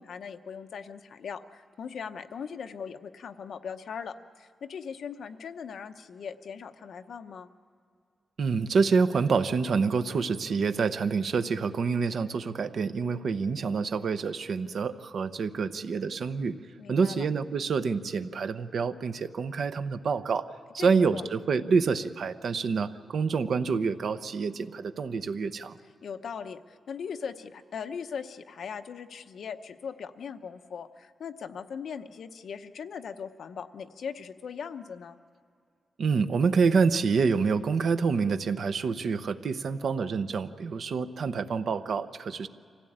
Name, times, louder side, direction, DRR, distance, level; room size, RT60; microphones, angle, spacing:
voice 1, 0.0-7.5 16.8-17.3 20.8-21.2 26.0-35.2, left 6 dB, 65° left, 8 dB, 0.9 m, -39 dB
voice 2, 8.4-16.6 16.9-20.5 20.7-25.8 36.0-42.5, right 5 dB, 55° right, 10 dB, 0.8 m, -27 dB
25.0 x 16.0 x 8.8 m, 2.4 s
wide cardioid pair, 180°, 0 cm